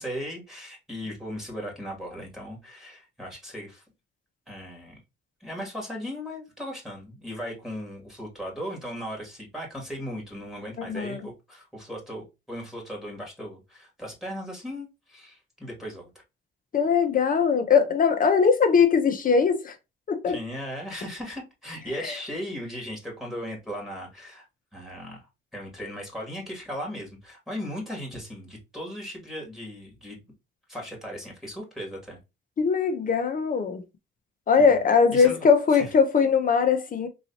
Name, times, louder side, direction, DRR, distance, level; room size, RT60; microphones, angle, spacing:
voice 1, 0.0-3.8 4.5-5.0 5.4-16.1 20.3-24.5 24.7-25.3 25.5-30.2 30.7-32.2 34.6-34.7 35.1-35.4 35.7-35.9, equal, ahead, 2.1 m, -37 dB
voice 2, 10.8-11.2 16.7-19.7 20.1-20.4 22.0-22.1 32.6-33.8 34.5-37.1, left 6 dB, 45° left, 0.8 m, -21 dB
4.0 x 3.0 x 2.7 m
cardioid pair, 90°, 20 cm